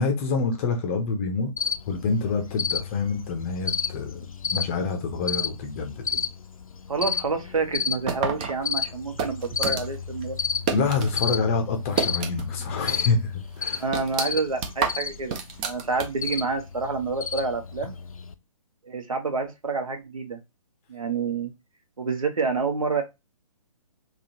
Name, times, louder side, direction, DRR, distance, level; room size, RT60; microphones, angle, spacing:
voice 1, 0.0-1.5 1.9-6.2 10.7-13.8, left 4 dB, 25° left, 0.6 m, -27 dB
Cricket, 1.6-18.3, left 6 dB, 70° left, 0.4 m, -32 dB
voice 2, 6.9-10.4 13.8-15.4 15.6-17.9 18.8-20.4 20.9-21.5 22.0-23.0, right 4 dB, 70° right, 1.0 m, -28 dB
sound 1, 8.1-11.2 11.5-12.7 13.0-13.1 13.5-16.4, right 6 dB, 15° right, 0.3 m, -30 dB
3.6 x 2.3 x 2.8 m
figure-of-eight pair, 130°, 18 cm